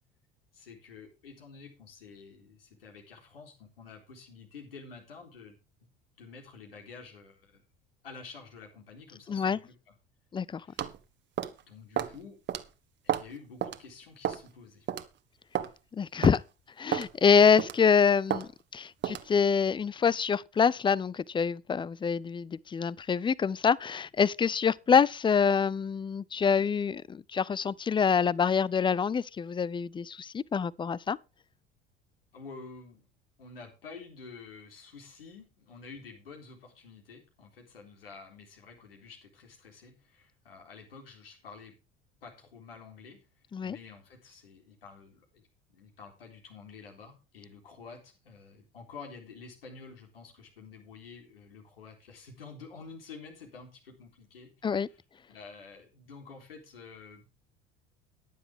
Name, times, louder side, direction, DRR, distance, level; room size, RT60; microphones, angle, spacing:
voice 1, 0.5-5.9 6.2-7.6 8.0-9.9 10.6-10.8 11.6-12.4 13.0-14.9 32.3-33.1 33.4-41.8 42.2-43.2 43.6-45.4 45.7-55.0 55.3-57.3, left 4 dB, 80° left, 3.8 m, -49 dB
voice 2, 9.3-9.6 10.3-10.6 15.9-16.4 16.8-31.2 43.5-43.8 54.6-54.9, left 6 dB, 15° left, 0.5 m, -26 dB
sound 1, 10.8-11.0 11.4-11.6 12.0-12.2 12.5-12.6 13.1-13.3 13.6-13.8 14.2-14.5 14.9-15.0 15.5-15.7 16.2-16.4 16.9-17.1 17.6-17.8 18.3-18.5 19.0-19.3, right 10 dB, 40° right, 1.4 m, -31 dB
15.5 x 10.0 x 3.6 m
figure-of-eight pair, 65°, 29 cm